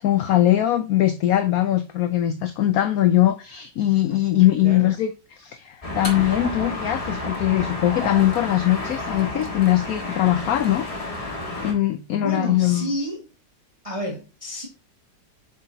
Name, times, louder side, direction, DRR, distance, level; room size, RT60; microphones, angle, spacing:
voice 1, 0.0-5.1 5.4-10.9 11.6-12.9, left 13 dB, 70° left, 0.9 m, -21 dB
voice 2, 4.6-4.9 12.1-13.3 13.8-14.7, equal, 20° right, 1.7 m, -30 dB
sound 1, 5.8-11.7, left 2 dB, 20° left, 1.4 m, -30 dB
7.7 x 5.0 x 2.7 m
omnidirectional pair, 2.0 m